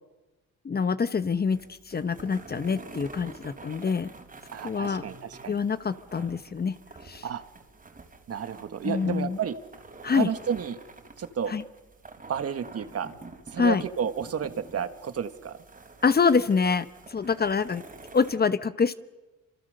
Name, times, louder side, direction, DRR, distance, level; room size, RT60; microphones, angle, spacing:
voice 1, 0.6-1.6 1.9-4.1 4.6-5.0 5.5-6.7 7.0-7.2 8.8-9.4 10.0-10.3 11.5-11.6 13.6-13.8 16.0-17.8 18.1-18.9, left 5 dB, 30° left, 14 dB, 1.0 m, -25 dB
sound 1, 1.3-18.3, right 3 dB, 30° right, 3.8 m, -48 dB
voice 2, 4.5-5.6 7.2-7.4 8.3-9.6 10.0-10.8 11.2-11.6 12.3-13.1 13.5-15.6, right 7 dB, 50° right, 10 dB, 1.8 m, -31 dB
27.5 x 26.0 x 6.7 m, 1.1 s
cardioid pair, 90°, 30 cm